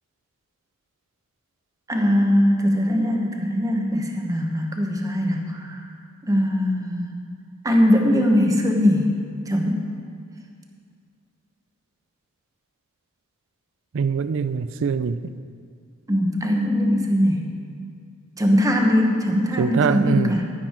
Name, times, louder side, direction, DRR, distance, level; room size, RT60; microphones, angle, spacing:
voice 1, 1.9-5.8 6.2-7.1 7.6-9.1 9.5-9.9 16.1-17.5 18.4-20.4, equal, 15° right, 1 dB, 1.1 m, -21 dB
voice 2, 13.9-15.4 19.6-20.3, right 6 dB, 60° right, 13 dB, 0.4 m, -23 dB
11.0 x 10.5 x 4.4 m, 2.2 s
head